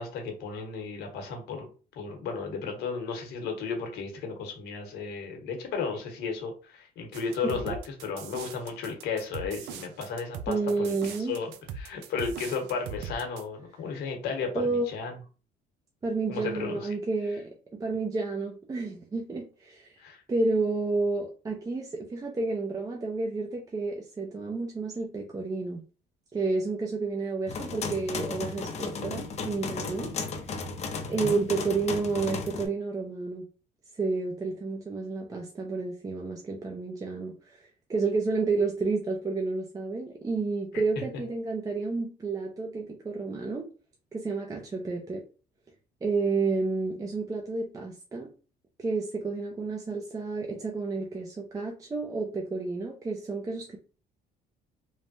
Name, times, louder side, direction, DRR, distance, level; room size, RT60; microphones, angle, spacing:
voice 1, 0.0-1.7 1.9-15.1 16.3-16.8 20.0-20.2 31.0-31.7, left 5 dB, 80° left, 3 dB, 1.0 m, -34 dB
sound 1, 7.1-13.4, right 6 dB, 90° right, 0.4 m, -40 dB
voice 2, 7.4-7.8 10.5-11.4 14.5-14.9 16.0-20.0 20.3-25.8 26.3-30.1 31.1-33.5 33.9-43.6 44.1-45.2 46.0-48.3 48.8-53.8, right 3 dB, 20° right, 0 dB, 0.5 m, -30 dB
sound 2, 27.5-32.7, left 4 dB, 40° left, 0.5 m, -35 dB
3.2 x 2.1 x 2.6 m, 0.35 s
cardioid pair, 110°, 17 cm